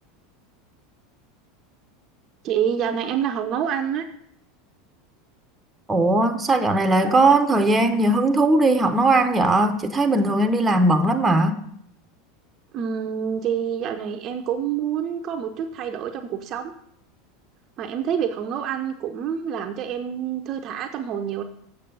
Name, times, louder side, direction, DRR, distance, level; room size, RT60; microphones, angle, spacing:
voice 1, 2.4-4.0 12.7-16.7 17.8-21.4, right 8 dB, 45° right, 5 dB, 0.7 m, -27 dB
voice 2, 5.9-11.6, right 2 dB, 15° right, 8 dB, 0.9 m, -19 dB
7.5 x 6.7 x 5.4 m, 0.69 s
hypercardioid pair, 85°, 0 cm